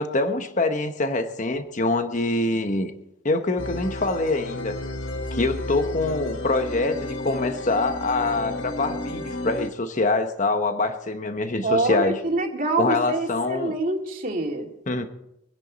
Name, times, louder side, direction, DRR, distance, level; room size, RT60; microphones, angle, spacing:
voice 1, 0.0-2.9 3.2-4.8 5.3-12.2 12.8-13.7 14.9-15.1, left 2 dB, 40° left, 8 dB, 1.0 m, -25 dB
sound 1, 3.6-9.7, left 2 dB, 65° left, 1.1 m, -32 dB
voice 2, 11.6-14.7, right 2 dB, 40° right, 1 dB, 2.5 m, -25 dB
24.0 x 10.0 x 4.1 m, 0.81 s
head